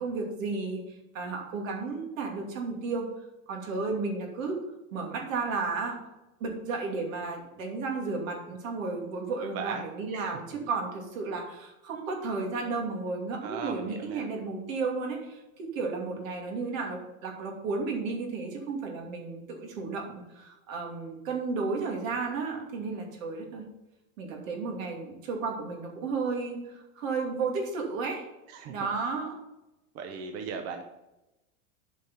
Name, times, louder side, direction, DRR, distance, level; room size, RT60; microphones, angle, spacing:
voice 1, 0.0-3.1 3.5-4.6 4.9-6.0 6.4-23.7 24.2-28.2 28.6-29.4, right 4 dB, 75° right, 1 dB, 2.7 m, -33 dB
voice 2, 9.4-9.8 10.1-10.7 13.4-14.3 28.5-28.7 29.9-30.9, right 5 dB, 35° right, 5 dB, 0.8 m, -38 dB
9.1 x 5.2 x 5.6 m, 0.97 s
supercardioid pair, 150°, 40 cm